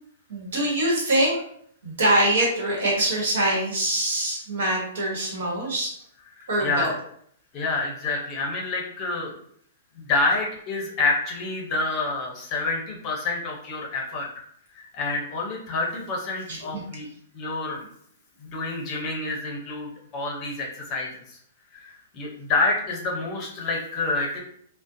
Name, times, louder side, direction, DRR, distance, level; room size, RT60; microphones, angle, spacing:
voice 1, 0.3-1.4 1.8-5.9 6.5-6.9 16.5-16.8, right 1 dB, 75° right, -3 dB, 1.1 m, -24 dB
voice 2, 6.4-6.9 7.5-9.3 10.0-14.3 14.7-17.1 17.3-17.8 18.4-21.1 21.7-24.4, left 3 dB, 30° left, 0 dB, 0.6 m, -28 dB
2.4 x 2.0 x 2.5 m, 0.65 s
hypercardioid pair, 160°, 0 cm